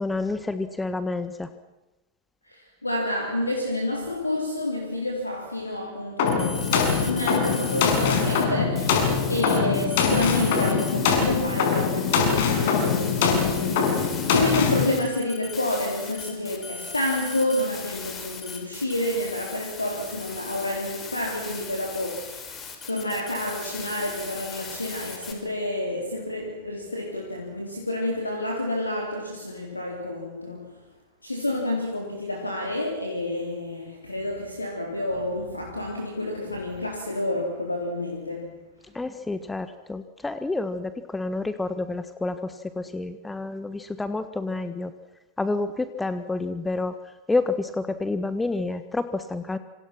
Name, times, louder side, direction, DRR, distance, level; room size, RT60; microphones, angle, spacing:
voice 1, 0.0-1.5 38.9-44.9 45.4-47.0 47.3-49.6, left 3 dB, 10° left, 11 dB, 1.5 m, -29 dB
voice 2, 2.4-22.5 22.9-30.8 31.2-38.6, left 1 dB, 80° left, 1 dB, 3.8 m, -29 dB
sound 1, 6.2-14.8, left 6 dB, 50° left, 6.3 m, -23 dB
sound 2, 6.3-8.4 8.8-25.3, left 5 dB, 25° left, 5.9 m, -39 dB
27.5 x 27.0 x 6.1 m, 1.0 s
figure-of-eight pair, 90°, 0 cm